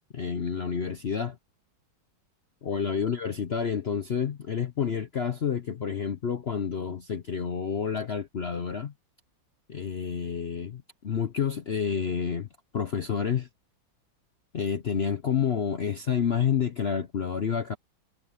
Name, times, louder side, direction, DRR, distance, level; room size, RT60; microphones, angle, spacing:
voice 1, 0.1-1.4 2.6-8.9 9.7-12.5 12.7-13.5 14.5-17.7, left 7 dB, 60° left, 0.6 m, -29 dB
omnidirectional pair, 2.2 m